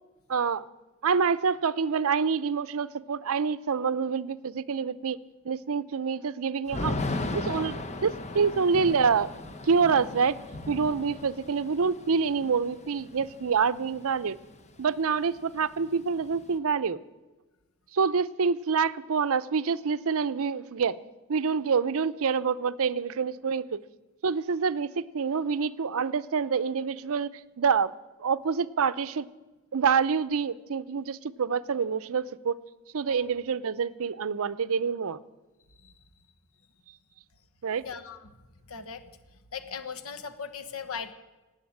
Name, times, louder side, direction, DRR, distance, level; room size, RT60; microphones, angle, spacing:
voice 1, 0.3-0.6 1.0-5.2 5.4-7.0 7.3-9.3 9.7-10.4 10.7-14.4 14.8-17.0 17.9-21.0 21.3-23.8 24.2-27.3 27.6-27.9 28.2-29.3 29.7-32.6 32.9-35.2 37.6-37.8, right 5 dB, 70° right, 16 dB, 0.6 m, -27 dB
Thunder / Rain, 6.7-14.5 14.8-14.9 15.2-16.6, left 2 dB, 30° left, 1.0 m, -37 dB
voice 2, 37.8-38.2 38.7-39.0 39.5-41.1, left 6 dB, 70° left, 9 dB, 1.2 m, -38 dB
18.5 x 7.9 x 8.7 m, 1.2 s
head